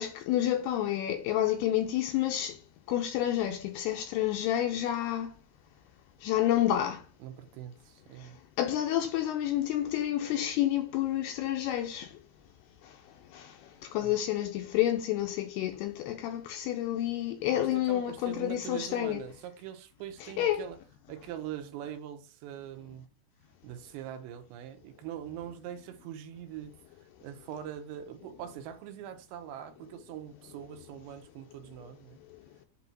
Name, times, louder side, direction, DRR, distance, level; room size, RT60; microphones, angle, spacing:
voice 1, 0.0-2.6 2.9-5.4 6.2-7.1 8.2-8.3 8.6-12.2 12.8-13.0 13.3-19.2 20.2-20.6, left 12 dB, 85° left, 2.4 m, -29 dB
voice 2, 7.2-8.4 14.0-14.1 17.5-20.8 21.1-23.1 23.6-26.7 27.2-32.2, right 10 dB, 85° right, 3.1 m, -43 dB
8.2 x 2.8 x 5.9 m
omnidirectional pair, 5.1 m